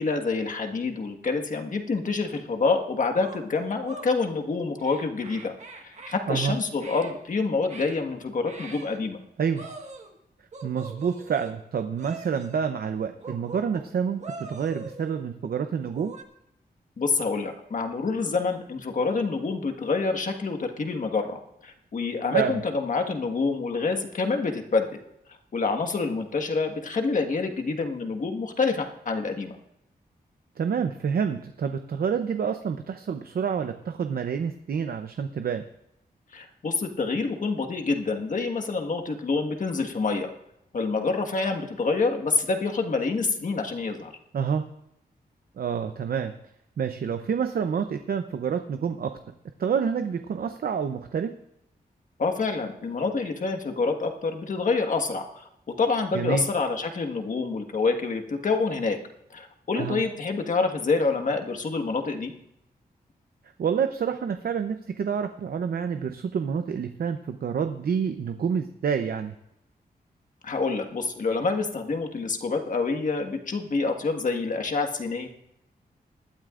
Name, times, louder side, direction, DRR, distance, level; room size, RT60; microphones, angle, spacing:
voice 1, 0.0-5.5 5.8-9.2 17.0-25.0 25.5-29.5 36.3-40.3 40.7-44.1 52.2-55.4 55.8-59.0 59.3-62.3 70.4-75.3, left 4 dB, 55° left, 5 dB, 1.5 m, -27 dB
sound 1, 2.3-2.4 3.2-4.1 4.8-6.2 6.8-7.1 7.7-8.0 8.5-9.0 9.6-10.2 10.5-11.6 12.0-12.6 13.2-13.9 14.2-15.2 15.8-16.2, right 3 dB, 45° right, 1.6 m, -43 dB
voice 2, 10.6-16.1 22.3-22.6 30.6-35.6 44.3-44.6 45.6-46.3 46.8-49.1 49.6-51.3 56.1-56.4 59.8-60.0 63.6-69.3, right 7 dB, 70° right, 7 dB, 0.7 m, -28 dB
20.0 x 12.5 x 2.5 m, 0.81 s
wide cardioid pair, 125°, 16 cm